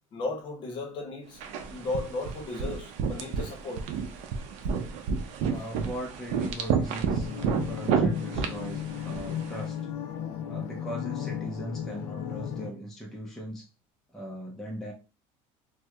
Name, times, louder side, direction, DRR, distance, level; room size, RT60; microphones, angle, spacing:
voice 1, 0.1-1.4 1.7-3.8, left 2 dB, 40° left, 0.8 m, -35 dB
sound 1, 1.4-9.6, right 6 dB, 60° right, 0.6 m, -31 dB
voice 2, 5.4-9.8 10.5-13.7 14.1-14.9, equal, 5° left, 0.4 m, -39 dB
sound 2, 7.1-12.7, left 8 dB, 90° left, 0.6 m, -35 dB
4.4 x 2.1 x 2.3 m
cardioid pair, 165°, 13 cm